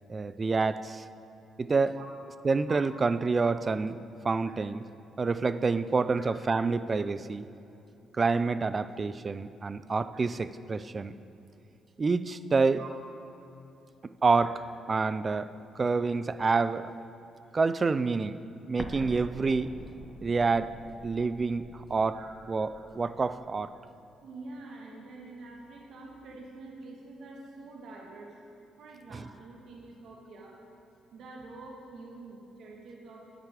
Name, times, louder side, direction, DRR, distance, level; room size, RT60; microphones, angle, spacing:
voice 1, 0.1-1.1 1.6-2.0 2.4-3.9 4.2-4.8 5.2-7.5 8.1-11.1 12.0-12.8 14.2-14.5 14.9-15.5 15.8-16.9 17.5-18.4 18.7-19.7 20.2-20.8 21.0-22.2 22.5-23.7 29.1-29.3, right 4 dB, 35° right, 13 dB, 0.4 m, -27 dB
Explosion, 18.8-23.5, left 1 dB, 10° left, 0.9 m, -46 dB
voice 2, 24.2-28.3 28.8-30.6 31.1-33.3, right 3 dB, 70° right, -1 dB, 1.6 m, -46 dB
9.3 x 9.2 x 4.9 m, 2.9 s
cardioid pair, 90°, 0 cm